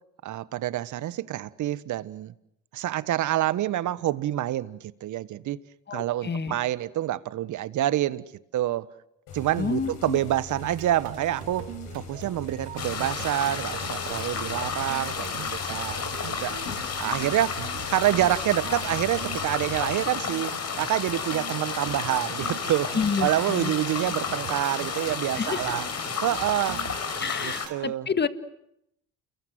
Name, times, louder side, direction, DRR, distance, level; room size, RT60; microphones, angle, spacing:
voice 1, 0.2-2.3 2.7-5.6 5.9-8.2 8.5-8.9 9.3-11.7 11.9-16.0 16.2-16.6 17.0-17.6 17.9-22.9 23.2-25.9 26.2-26.8 27.4-28.1, right 13 dB, 60° right, 1.3 m, -27 dB
voice 2, 5.9-6.5 9.6-10.2 22.9-23.7 25.4-25.7 27.2-28.3, left 5 dB, 30° left, 1.9 m, -29 dB
sound 1, 9.3-20.0, left 5 dB, 70° left, 7.6 m, -42 dB
sound 2, 10.6-27.8, right 10 dB, 80° right, 2.5 m, -42 dB
sound 3, 12.8-27.7, left 6 dB, 50° left, 5.3 m, -32 dB
30.0 x 22.5 x 7.9 m
hypercardioid pair, 65°, 34 cm